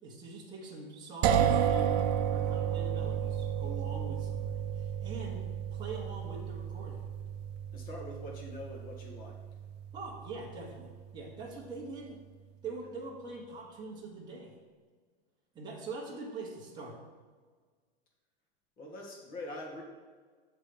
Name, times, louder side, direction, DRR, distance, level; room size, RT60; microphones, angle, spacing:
voice 1, 0.0-7.1 9.9-12.2 12.6-14.6 15.5-17.0, right 3 dB, 15° right, -5 dB, 1.2 m, -44 dB
sound 1, 1.2-11.0, right 9 dB, 40° right, 0.4 m, -32 dB
voice 2, 7.7-9.3 18.8-19.8, left 1 dB, 25° left, 0 dB, 1.3 m, -43 dB
7.3 x 3.3 x 5.2 m, 1.5 s
hypercardioid pair, 140°, 32 cm